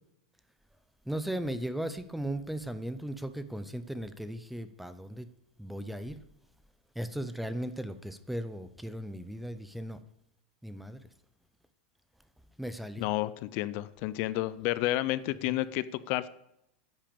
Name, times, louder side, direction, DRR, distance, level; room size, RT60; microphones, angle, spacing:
voice 1, 1.1-5.3 5.6-6.2 7.0-10.0 10.6-11.0 12.6-13.0 15.5-15.6, right 1 dB, ahead, 12 dB, 0.6 m, -37 dB
voice 2, 13.0-16.3, left 16 dB, 40° left, 16 dB, 0.5 m, -31 dB
10.0 x 9.0 x 6.9 m, 0.81 s
supercardioid pair, 160°, 5 cm